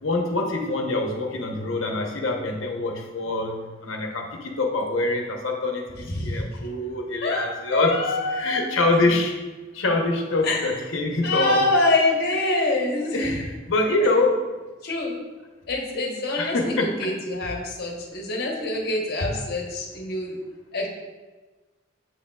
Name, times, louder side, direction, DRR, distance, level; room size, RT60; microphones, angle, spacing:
voice 1, 0.0-8.0 8.3-9.4 9.7-11.6 13.1-14.5 16.4-17.1, left 2 dB, 75° left, 1 dB, 0.9 m, -25 dB
voice 2, 6.1-6.6 7.2-8.6 10.4-10.7 11.2-13.4 14.0-14.1 14.8-15.1 15.7-20.4 20.7-20.9, left 2 dB, 50° left, -1 dB, 1.1 m, -25 dB
6.6 x 6.4 x 2.3 m, 1.3 s
head